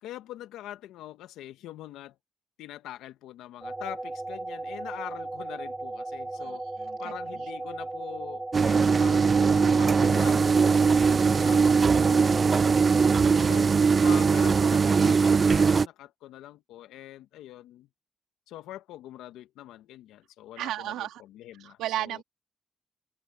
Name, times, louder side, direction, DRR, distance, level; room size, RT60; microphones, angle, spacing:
voice 1, 0.0-2.2 2.6-6.6 7.0-12.9 13.4-17.9 18.5-22.2, left 14 dB, 85° left, 2.0 m, -44 dB
sound 1, 3.6-13.2, right 2 dB, 20° right, 1.6 m, -36 dB
voice 2, 6.4-7.5 20.6-21.2 21.6-22.2, right 13 dB, 80° right, 3.8 m, -36 dB
sound 2, 8.5-15.9, right 5 dB, 45° right, 0.5 m, -21 dB
open air
supercardioid pair, 50°, 0 cm